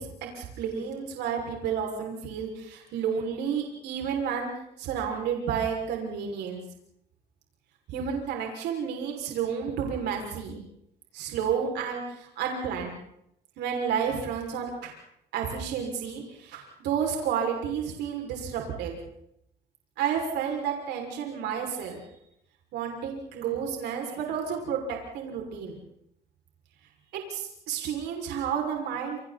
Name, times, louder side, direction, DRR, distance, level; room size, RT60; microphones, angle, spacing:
voice 1, 0.0-4.5 4.8-6.6 7.9-10.6 11.1-13.0 13.6-14.9 15.3-19.0 20.0-22.1 22.7-25.8 27.1-29.2, right 7 dB, 85° right, 1 dB, 6.0 m, -31 dB
29.5 x 29.0 x 4.3 m, 0.77 s
cardioid pair, 110°, 17 cm